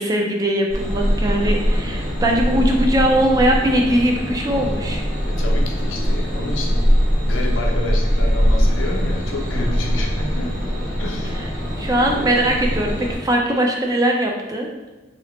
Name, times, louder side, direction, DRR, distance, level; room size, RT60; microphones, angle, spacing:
voice 1, 0.0-5.0 11.8-14.7, right 1 dB, 20° right, 1 dB, 0.3 m, -20 dB
sound 1, 0.7-13.2, equal, 45° right, 1.2 m, -21 dB
voice 2, 5.3-6.8 7.2-10.6 11.0-11.4, left 2 dB, 85° left, 1 dB, 0.6 m, -29 dB
3.1 x 2.8 x 3.0 m, 1.2 s
head